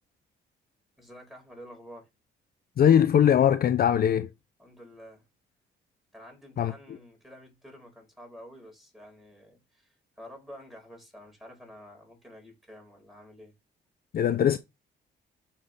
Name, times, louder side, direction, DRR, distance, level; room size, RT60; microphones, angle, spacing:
voice 1, 1.0-2.1 4.6-5.2 6.1-13.5, equal, ahead, 4.7 m, -49 dB
voice 2, 2.8-4.3 6.6-6.7 14.1-14.6, left 9 dB, 50° left, 0.5 m, -21 dB
6.4 x 5.8 x 3.3 m
cardioid pair, 90°, 20 cm